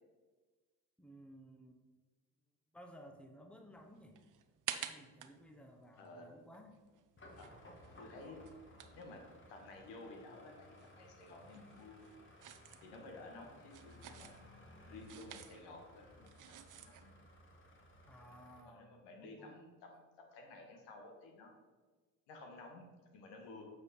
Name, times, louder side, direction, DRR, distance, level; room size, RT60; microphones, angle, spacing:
voice 1, 1.0-1.8 2.7-4.2 4.8-6.8 18.1-18.9 19.2-19.6, equal, 5° left, 4 dB, 1.0 m, -57 dB
sound 1, 3.7-10.1 10.3-17.1, right 10 dB, 45° right, 0.7 m, -51 dB
voice 2, 6.0-6.3 7.4-7.5 8.0-8.4 9.0-9.2 9.5-12.0 12.8-14.4 14.9-17.1 18.3-21.5 22.3-22.9 23.1-23.7, left 2 dB, 70° left, 2 dB, 1.6 m, -53 dB
sound 2, 7.2-18.6, left 1 dB, 25° left, 1.8 m, -59 dB
7.9 x 5.1 x 4.2 m, 1.3 s
hypercardioid pair, 60°, 43 cm